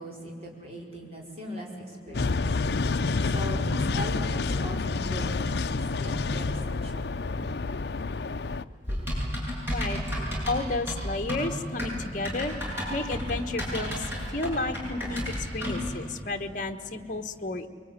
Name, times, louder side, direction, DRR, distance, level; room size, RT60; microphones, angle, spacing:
voice 1, 0.0-2.6 3.2-5.6 6.0-7.1, equal, 35° right, -1 dB, 4.9 m, -39 dB
sound 1, 2.1-8.6, left 3 dB, 65° left, 0.6 m, -28 dB
Typing, 8.9-15.9, equal, 10° right, 6.9 m, -32 dB
voice 2, 10.5-15.2 15.5-17.7, left 2 dB, 45° left, 6 dB, 1.3 m, -32 dB
24.0 x 22.5 x 9.6 m, 2.5 s
head